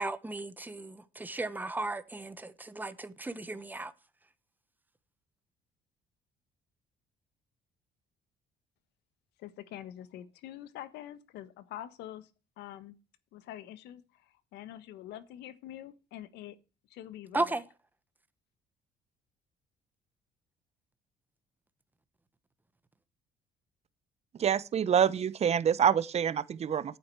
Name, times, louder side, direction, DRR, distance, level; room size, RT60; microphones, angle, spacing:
voice 1, 0.0-3.9 17.3-17.6, right 2 dB, 10° right, 1.2 m, -35 dB
voice 2, 9.4-12.3 12.6-13.0 13.3-16.6 16.9-17.6, left 12 dB, 85° left, 1.4 m, -45 dB
voice 3, 24.4-27.0, right 8 dB, 40° right, 0.8 m, -26 dB
11.5 x 8.9 x 4.6 m
cardioid pair, 110°, 17 cm